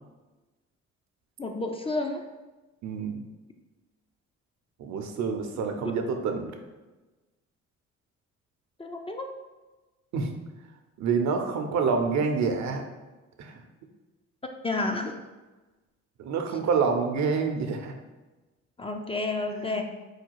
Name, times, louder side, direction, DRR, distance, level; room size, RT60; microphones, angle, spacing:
voice 1, 1.4-2.2 8.8-9.3 14.6-15.1 18.8-19.8, left 2 dB, 20° left, 4 dB, 0.4 m, -30 dB
voice 2, 2.8-3.2 4.8-6.5 10.1-10.3 11.0-12.8 13.4-13.5 16.2-17.9 19.5-19.8, right 5 dB, 65° right, 5 dB, 0.7 m, -27 dB
4.8 x 2.3 x 4.6 m, 1.2 s
cardioid pair, 90°, 30 cm